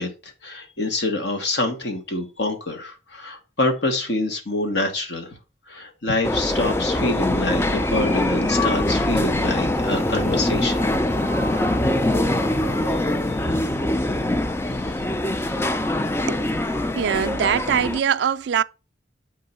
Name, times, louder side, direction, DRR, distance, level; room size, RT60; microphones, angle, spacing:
voice 1, 0.0-5.4 5.7-10.9 13.3-13.4 14.7-14.9 15.4-15.6, left 2 dB, 70° left, 1.3 m, -26 dB
sound 1, 6.2-18.0, left 1 dB, 15° left, 0.3 m, -23 dB
sound 2, 9.7-14.4, right 1 dB, 35° left, 2.2 m, -36 dB
voice 2, 16.3-16.6 16.9-18.6, right 8 dB, 70° right, 0.3 m, -22 dB
7.7 x 3.8 x 5.5 m
head